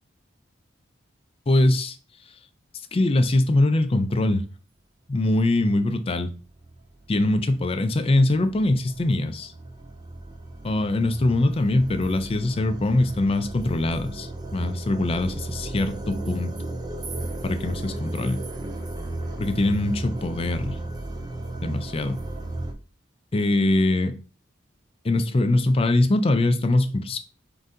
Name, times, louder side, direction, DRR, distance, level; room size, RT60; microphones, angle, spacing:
voice 1, 1.5-1.9 2.9-4.4 5.1-6.3 7.1-9.5 10.6-16.5 17.4-18.4 19.4-20.8 21.6-22.2 23.3-24.1 25.0-27.2, left 2 dB, 30° left, 0.4 m, -22 dB
sound 1, 5.8-5.9 6.4-22.7, right 2 dB, 20° right, 0.5 m, -35 dB
3.9 x 2.7 x 3.7 m
head